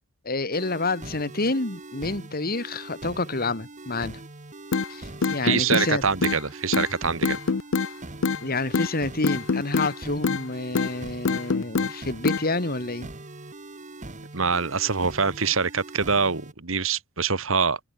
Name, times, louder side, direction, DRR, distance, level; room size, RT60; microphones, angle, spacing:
voice 1, 0.2-4.2 4.9-6.0 8.4-13.1, left 2 dB, 45° left, 2.7 m, -28 dB
sound 1, 0.5-16.5, right 2 dB, 35° right, 1.8 m, -42 dB
sound 2, 4.7-4.9 5.2-5.9 6.2-6.4 6.7-6.9 7.2-7.9 8.2-8.4 8.7-8.9 9.2-9.9 10.2-10.4 10.7-10.9 11.2-11.9 12.2-12.4, left 4 dB, 65° left, 0.6 m, -24 dB
voice 2, 5.4-7.4 14.3-17.8, right 5 dB, 70° right, 1.9 m, -24 dB
head